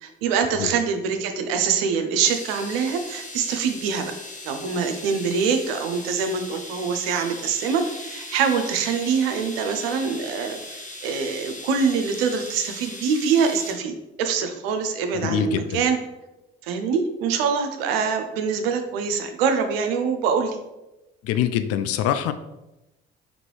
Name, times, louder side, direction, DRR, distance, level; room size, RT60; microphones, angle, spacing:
voice 1, 0.0-4.1 4.4-13.9 14.2-16.0 16.6-20.6, right 6 dB, 75° right, 6 dB, 0.6 m, -24 dB
sound 1, 2.2-13.7, left 2 dB, 25° left, 1.0 m, -39 dB
voice 2, 15.1-15.8 21.2-22.3, left 10 dB, 50° left, 10 dB, 0.4 m, -24 dB
3.7 x 3.6 x 3.1 m, 0.98 s
figure-of-eight pair, 50°, 30 cm